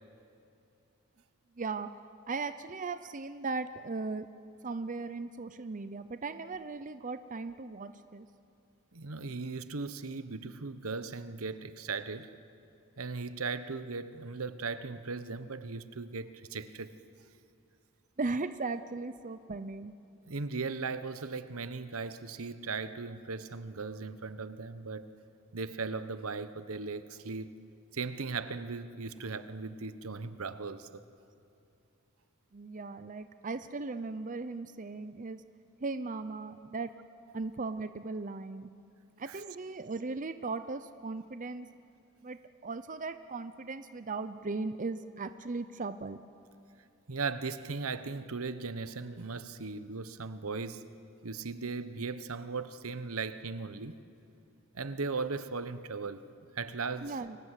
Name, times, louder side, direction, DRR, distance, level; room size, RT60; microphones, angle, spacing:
voice 1, 1.6-2.0 2.3-4.3 4.6-8.3 18.2-19.9 32.5-35.4 35.8-36.9 37.3-38.7 39.2-41.7 42.2-46.2 57.0-57.4, right 3 dB, 35° right, 0.7 m, -37 dB
voice 2, 8.9-12.3 13.0-16.9 20.3-25.1 25.5-27.5 27.9-31.0 39.3-39.4 47.1-50.9 51.2-54.0 54.7-56.2 56.5-57.2, right 4 dB, 80° right, 1.1 m, -38 dB
29.5 x 23.5 x 8.3 m
head